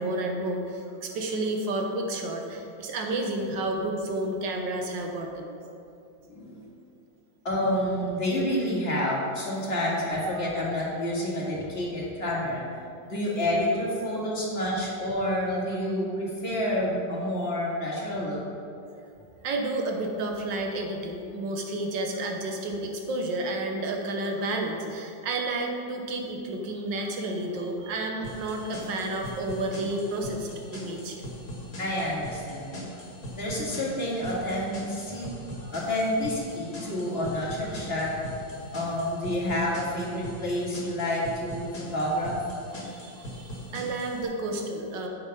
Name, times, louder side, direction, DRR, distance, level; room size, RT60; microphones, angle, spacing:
voice 1, 0.0-5.5 14.2-14.3 19.4-31.1 35.6-35.7 36.8-36.9 42.8-45.1, right 2 dB, 75° right, 2 dB, 1.7 m, -31 dB
voice 2, 6.3-6.6 7.4-12.6 13.1-18.4 31.8-32.9 33.3-35.3 35.7-38.3 38.7-42.4, left 1 dB, 35° left, -5 dB, 2.2 m, -29 dB
sound 1, 28.2-44.2, equal, 50° left, 2.4 m, -41 dB
7.9 x 6.8 x 5.5 m, 2.6 s
omnidirectional pair, 2.0 m